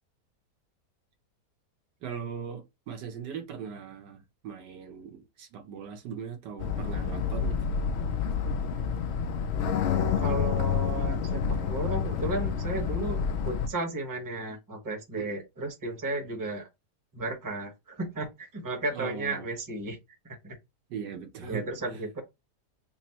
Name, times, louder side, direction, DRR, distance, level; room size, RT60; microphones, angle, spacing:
voice 1, 2.0-7.7 15.2-15.4 18.9-19.5 20.9-21.7, right 7 dB, 90° right, 1.6 m, -39 dB
sound 1, 6.6-13.7, left 6 dB, 75° left, 0.6 m, -28 dB
voice 2, 10.2-16.7 17.1-20.0 20.2-20.6 21.4-22.2, right 2 dB, 15° right, 0.8 m, -34 dB
4.1 x 2.0 x 4.2 m
omnidirectional pair, 1.8 m